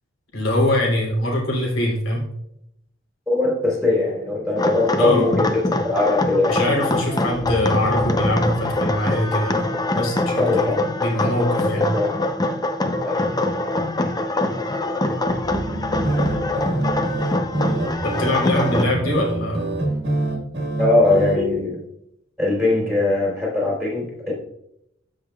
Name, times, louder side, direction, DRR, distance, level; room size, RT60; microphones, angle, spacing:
voice 1, 0.3-2.2 5.0-5.3 6.4-9.6 10.0-10.7 11.0-11.9 18.0-19.7, left 1 dB, 75° left, -2 dB, 3.1 m, -22 dB
voice 2, 3.3-6.5 10.4-10.8 11.9-12.1 13.0-13.2 20.8-21.8 22.4-24.3, left 2 dB, ahead, -4 dB, 3.2 m, -20 dB
sound 1, 4.6-18.8, left 2 dB, 20° left, 0.6 m, -24 dB
sound 2, 7.3-10.3 15.3-18.5, right 1 dB, 35° right, 0.6 m, -35 dB
sound 3, 15.9-21.4, right 2 dB, 55° right, 1.6 m, -25 dB
14.0 x 5.4 x 2.3 m, 0.79 s
head